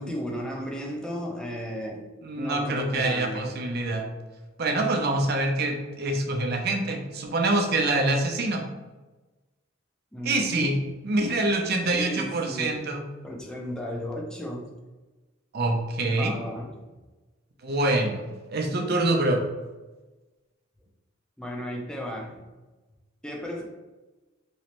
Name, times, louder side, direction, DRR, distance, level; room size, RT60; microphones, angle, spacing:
voice 1, 0.0-2.1 2.4-3.5 10.1-10.9 11.8-12.8 13.2-14.7 16.1-16.7 21.4-22.4 23.2-23.6, equal, 5° left, -1 dB, 0.5 m, -34 dB
voice 2, 2.2-4.0 4.6-8.6 10.2-10.7 11.0-13.0 15.5-16.3 17.6-18.2 18.5-19.4, right 2 dB, 55° right, 3 dB, 0.5 m, -25 dB
3.1 x 3.0 x 2.9 m, 1.2 s
head